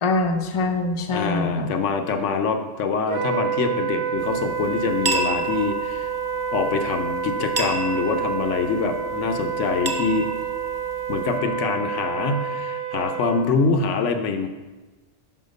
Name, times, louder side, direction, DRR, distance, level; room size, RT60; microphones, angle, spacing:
voice 1, 0.0-1.7, left 2 dB, 35° left, 5 dB, 0.5 m, -24 dB
voice 2, 1.1-6.1 6.5-10.3 11.1-14.5, left 4 dB, 85° left, 6 dB, 1.0 m, -25 dB
Wind instrument woodwind instrument, 3.1-13.5, right 6 dB, 65° right, 1.0 m, -28 dB
sound 1, 4.2-11.4, right 2 dB, 35° right, 0.4 m, -33 dB
5.8 x 5.7 x 5.2 m, 1.2 s
omnidirectional pair, 1.2 m